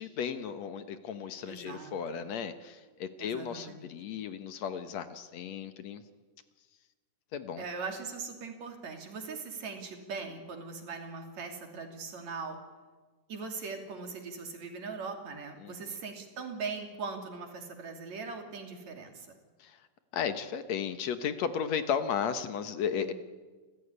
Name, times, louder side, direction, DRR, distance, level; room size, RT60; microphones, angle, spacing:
voice 1, 0.0-6.0 7.3-7.6 15.6-16.0 19.6-19.8 20.1-23.1, left 7 dB, 70° left, 10 dB, 2.3 m, -35 dB
voice 2, 1.5-2.3 3.2-3.9 7.6-12.6 13.3-19.3 23.0-23.1, right 4 dB, 65° right, 4 dB, 4.1 m, -40 dB
29.5 x 15.0 x 9.9 m, 1.4 s
omnidirectional pair, 3.4 m